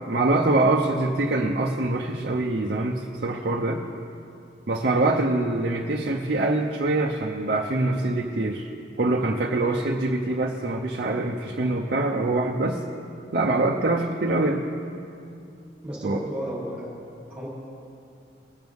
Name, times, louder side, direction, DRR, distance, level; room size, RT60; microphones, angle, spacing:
voice 1, 0.1-3.8 4.7-8.7 9.0-12.8 13.3-14.6 16.0-16.2, right 2 dB, 55° right, -1 dB, 0.6 m, -24 dB
voice 2, 15.8-16.9 17.3-17.5, equal, 5° right, -7 dB, 3.1 m, -33 dB
19.5 x 7.9 x 3.5 m, 2.5 s
head